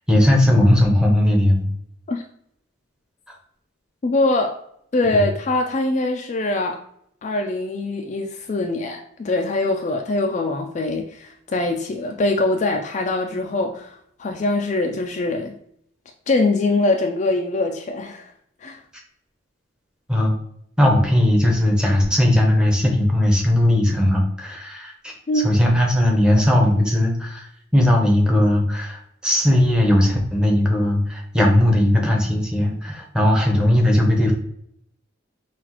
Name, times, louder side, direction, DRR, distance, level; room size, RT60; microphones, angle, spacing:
voice 1, 0.1-1.7 3.3-3.4 5.1-5.2 20.1-20.3 20.8-34.3, left 1 dB, 5° right, 0 dB, 0.7 m, -18 dB
voice 2, 4.0-4.6 4.9-6.8 7.2-15.5 16.3-18.3 18.6-18.8 25.3-25.5, left 2 dB, 35° left, 3 dB, 0.3 m, -23 dB
5.8 x 2.4 x 2.9 m, 0.70 s
head